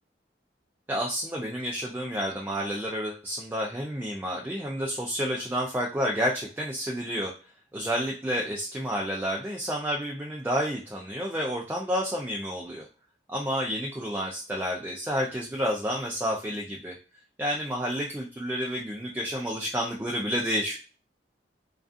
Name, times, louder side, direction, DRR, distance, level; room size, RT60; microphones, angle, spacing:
voice 1, 0.9-7.3 7.7-12.9 13.3-17.0 17.4-20.8, equal, 10° right, -2 dB, 0.3 m, -30 dB
2.3 x 2.3 x 2.5 m, 0.36 s
head